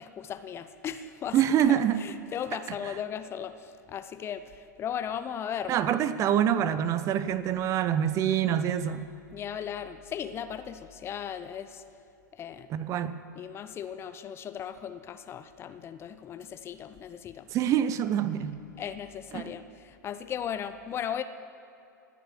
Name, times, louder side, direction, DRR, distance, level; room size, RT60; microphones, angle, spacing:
voice 1, 0.0-5.8 9.3-11.8 12.3-12.7 13.3-17.5 18.8-21.2, left 8 dB, 25° left, 11 dB, 0.6 m, -37 dB
voice 2, 1.3-2.0 5.7-9.1 12.7-13.1 17.5-18.5 19.3-19.4, right 10 dB, 30° right, 13 dB, 0.7 m, -25 dB
17.5 x 6.7 x 9.8 m, 2.8 s
figure-of-eight pair, 95°, 10 cm